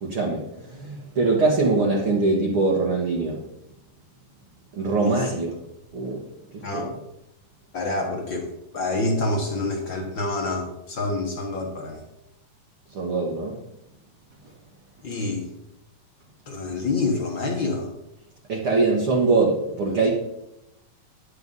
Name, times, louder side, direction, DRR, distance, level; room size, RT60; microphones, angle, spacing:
voice 1, 0.0-3.4 4.8-5.5 5.9-6.2 6.5-6.9 12.9-13.5 18.5-20.1, right 3 dB, 50° right, -1 dB, 1.9 m, -23 dB
voice 2, 7.7-12.0 15.0-15.5 16.5-17.9, left 2 dB, 60° left, 2 dB, 1.2 m, -27 dB
10.5 x 8.2 x 5.4 m, 0.85 s
omnidirectional pair, 4.0 m